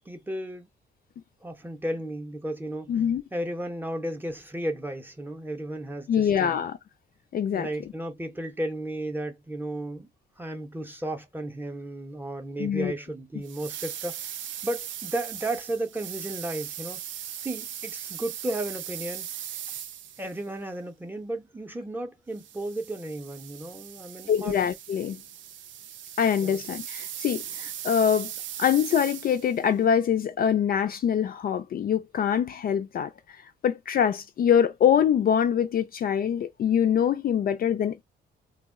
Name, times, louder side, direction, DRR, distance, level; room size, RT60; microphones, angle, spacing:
voice 1, 0.1-0.7 1.4-3.0 3.3-6.6 7.5-10.1 10.4-14.2 14.6-17.0 17.4-19.3 20.2-24.6 26.4-26.6, right 1 dB, 10° right, 0.6 m, -34 dB
voice 2, 2.9-3.2 6.1-6.8 7.3-7.7 12.6-12.9 24.3-25.2 26.2-28.3 28.6-33.1 33.6-38.0, left 8 dB, 50° left, 0.4 m, -24 dB
sound 1, 13.4-20.5 22.3-29.6, right 10 dB, 75° right, 0.5 m, -39 dB
2.2 x 2.0 x 3.5 m
cardioid pair, 90°, 20 cm